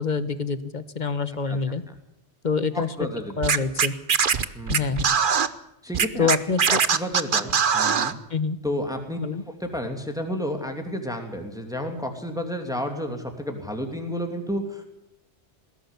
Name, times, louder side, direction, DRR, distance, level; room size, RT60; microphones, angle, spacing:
voice 1, 0.0-1.8 2.4-3.1 3.4-3.9 4.7-5.1 6.2-6.8 8.3-8.6 9.2-9.4, left 5 dB, 40° left, 13 dB, 1.3 m, -26 dB
voice 2, 2.7-3.4 4.5-5.0 5.8-6.3 6.9-8.2 8.6-9.2 9.6-14.8, equal, 5° right, 4 dB, 2.8 m, -31 dB
Scratching (performance technique), 3.4-5.5 5.9-8.1, right 6 dB, 50° right, 1.0 m, -21 dB
20.5 x 16.5 x 8.3 m, 0.81 s
omnidirectional pair, 1.2 m